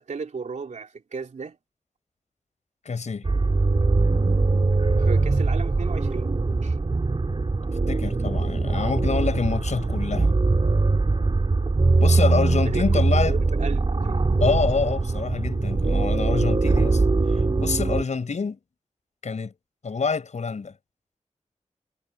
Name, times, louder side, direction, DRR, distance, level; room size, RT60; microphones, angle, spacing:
voice 1, 0.0-1.6 5.0-6.3 6.6-6.8 12.6-14.2, right 5 dB, 75° right, 3.1 m, -35 dB
voice 2, 2.8-3.3 7.9-10.3 12.0-13.4 14.4-17.0 17.6-18.6 19.2-19.5 19.8-20.7, left 5 dB, 70° left, 6.2 m, -26 dB
sound 1, 3.2-18.0, right 3 dB, 40° right, 3.1 m, -22 dB
wide cardioid pair, 85°, 12 cm